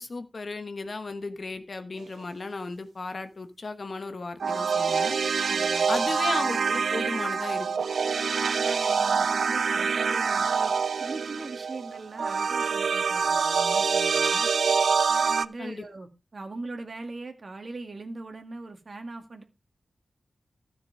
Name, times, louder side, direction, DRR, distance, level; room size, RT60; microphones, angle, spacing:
voice 1, 0.0-5.1 5.9-7.7 15.6-15.9, left 3 dB, 50° left, 1.2 m, -35 dB
sound 1, 4.4-15.5, right 5 dB, 80° right, 0.4 m, -25 dB
voice 2, 5.5-6.2 8.5-10.7 11.0-14.5 15.1-19.4, right 3 dB, 45° right, 1.9 m, -41 dB
13.0 x 6.7 x 4.8 m
wide cardioid pair, 115°, 0 cm